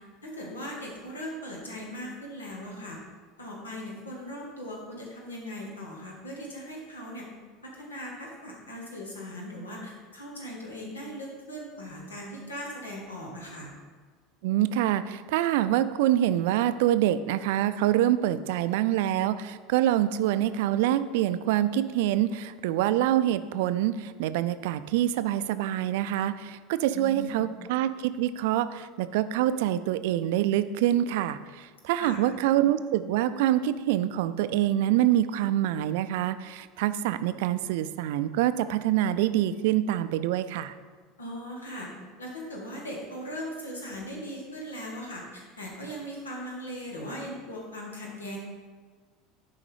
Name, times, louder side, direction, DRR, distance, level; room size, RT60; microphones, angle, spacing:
voice 1, 0.2-3.0 3.4-7.3 7.6-13.7 26.9-27.5 32.0-32.2 41.2-41.9 42.2-48.4, equal, 85° left, -2 dB, 1.6 m, -39 dB
voice 2, 14.4-40.7, right 12 dB, 65° right, 13 dB, 0.3 m, -26 dB
7.3 x 4.5 x 4.9 m, 1.5 s
hypercardioid pair, 75°, 0 cm